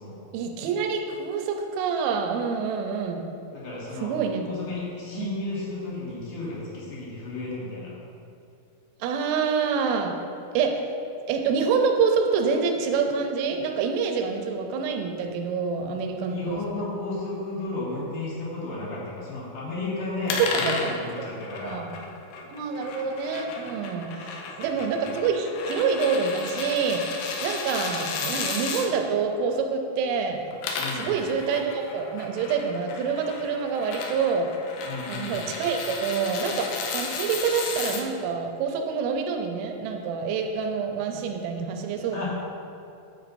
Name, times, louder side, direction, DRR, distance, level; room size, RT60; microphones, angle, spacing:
voice 1, 0.3-3.2 4.0-4.4 5.2-5.3 9.0-10.1 10.5-10.8 11.3-16.9 20.4-21.0 21.6-21.9 22.5-30.4 30.9-34.5 35.1-42.3, right 5 dB, 90° right, 4 dB, 3.1 m, -27 dB
voice 2, 3.5-4.2 4.4-7.9 16.3-21.8 24.6-24.7 30.8-31.1 34.8-35.4 42.1-42.3, left 2 dB, 55° left, -7 dB, 2.9 m, -33 dB
sound 1, 20.3-28.9 30.4-38.0, left 4 dB, 85° left, 2.9 m, -34 dB
9.7 x 8.0 x 2.6 m, 2.6 s
omnidirectional pair, 5.4 m